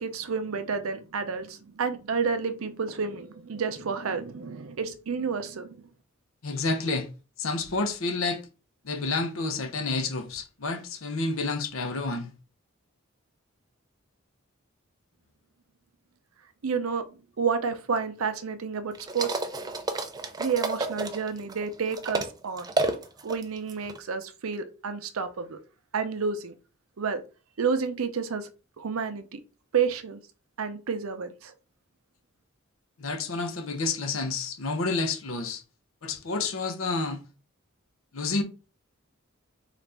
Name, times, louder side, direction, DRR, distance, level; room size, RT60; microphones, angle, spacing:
voice 1, 0.0-5.8 16.6-17.0 17.4-19.4 20.4-22.7 23.2-25.6 25.9-26.5 27.0-27.2 27.6-28.5 28.8-29.4 29.7-30.2 30.6-31.5, right 5 dB, 90° right, 0.6 m, -30 dB
voice 2, 6.4-7.1 7.4-8.4 8.8-12.3 33.0-35.6 36.0-37.2 38.1-38.4, left 3 dB, 70° left, 0.7 m, -29 dB
sound 1, 18.9-22.3 22.6-24.0, right 3 dB, 20° right, 0.4 m, -30 dB
4.0 x 2.4 x 3.3 m
head